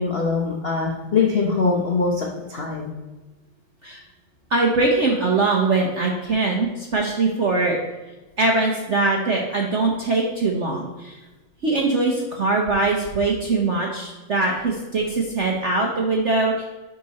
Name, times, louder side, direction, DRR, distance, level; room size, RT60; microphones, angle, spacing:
voice 1, 0.0-2.9, left 4 dB, 55° left, -2 dB, 0.6 m, -22 dB
voice 2, 4.5-7.8 8.4-11.2 11.6-16.6, right 3 dB, 55° right, -1 dB, 0.8 m, -22 dB
10.5 x 3.8 x 4.1 m, 1.2 s
omnidirectional pair, 2.3 m